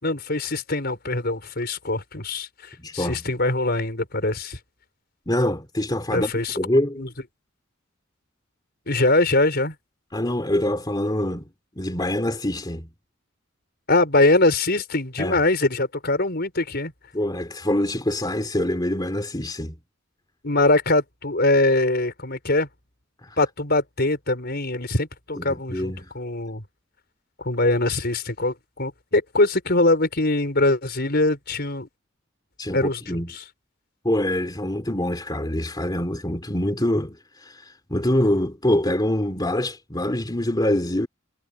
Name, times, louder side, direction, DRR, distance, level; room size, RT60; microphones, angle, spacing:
voice 1, 0.0-4.6 6.1-6.6 7.0-7.1 8.9-9.7 13.9-16.9 20.4-22.7 23.4-26.6 27.4-31.9 32.7-33.4, left 2 dB, 50° left, 5.2 m, -22 dB
voice 2, 2.8-3.2 5.3-7.0 10.1-11.4 11.8-12.9 15.2-15.4 17.1-19.8 23.2-23.4 25.4-26.1 32.6-33.3 34.0-41.1, left 1 dB, 20° left, 3.0 m, -25 dB
head